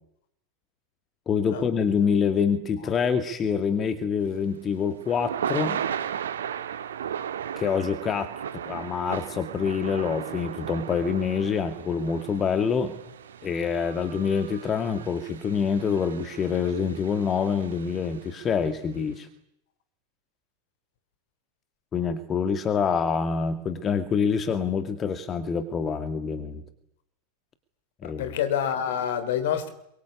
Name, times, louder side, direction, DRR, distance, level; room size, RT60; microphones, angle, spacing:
voice 1, 1.3-5.8 7.6-8.3 8.6-12.9 13.4-19.3 21.9-26.6 28.0-28.4, left 6 dB, 25° left, 2.3 m, -26 dB
Thunder / Rain, 4.3-18.5, right 9 dB, 65° right, 1.7 m, -36 dB
voice 2, 28.0-29.7, left 9 dB, 55° left, 3.5 m, -27 dB
26.0 x 23.5 x 8.6 m
figure-of-eight pair, 90°, 0 cm